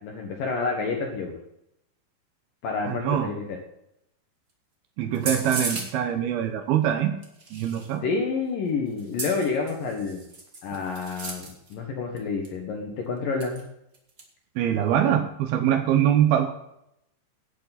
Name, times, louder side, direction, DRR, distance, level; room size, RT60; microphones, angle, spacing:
voice 1, 0.0-1.4 2.6-3.6 8.0-10.2 10.6-13.7, left 4 dB, 65° left, 1 dB, 2.4 m, -29 dB
voice 2, 2.9-3.3 5.0-7.1 7.5-8.0 14.6-16.5, right 10 dB, 80° right, 7 dB, 2.2 m, -23 dB
sound 1, 5.1-5.9 7.2-8.0 9.0-11.7 12.2-12.3 12.4-12.5 13.4-13.6 13.9-14.2, right 3 dB, 55° right, 0.9 m, -35 dB
18.0 x 8.6 x 4.1 m, 0.80 s
omnidirectional pair, 5.6 m